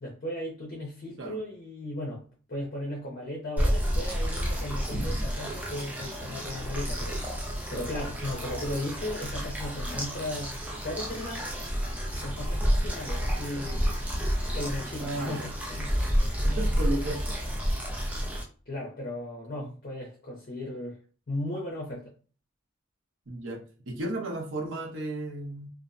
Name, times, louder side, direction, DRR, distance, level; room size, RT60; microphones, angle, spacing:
voice 1, 0.0-2.2 2.5-10.5 10.8-11.5 12.2-14.1 14.5-16.0 18.7-21.0 21.3-22.1, left 1 dB, 45° left, 0.5 m, -36 dB
sound 1, 3.6-18.4, equal, 5° right, 0.3 m, -30 dB
voice 2, 15.0-15.5 16.4-17.5 19.6-19.7 23.3-25.7, right 1 dB, 70° right, 0.7 m, -34 dB
2.4 x 2.0 x 2.5 m
head